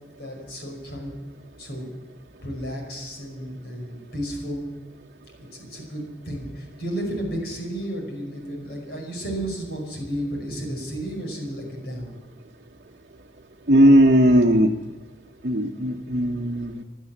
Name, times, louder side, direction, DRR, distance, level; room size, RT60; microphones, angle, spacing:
voice 1, 0.2-1.1 1.6-1.9 2.4-4.7 5.4-12.1, equal, 60° left, 1 dB, 5.3 m, -32 dB
voice 2, 13.7-14.7 15.4-16.8, equal, 50° right, 0 dB, 1.0 m, -17 dB
16.5 x 12.0 x 7.3 m, 1.3 s
head